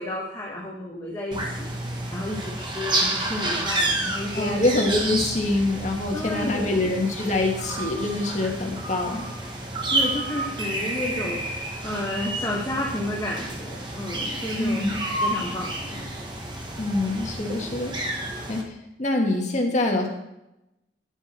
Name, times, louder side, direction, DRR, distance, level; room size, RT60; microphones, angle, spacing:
voice 1, 0.0-1.7 2.1-4.6 6.1-6.9 9.9-14.9 15.2-16.1, left 1 dB, 20° left, -5 dB, 1.5 m, -31 dB
sound 1, 1.3-18.6, right 2 dB, 25° right, 1.3 m, -30 dB
voice 2, 4.3-9.3 14.6-15.0 16.8-17.9 18.5-18.6 19.0-20.1, left 2 dB, 40° left, 1 dB, 1.8 m, -25 dB
10.0 x 8.2 x 4.5 m, 0.87 s
head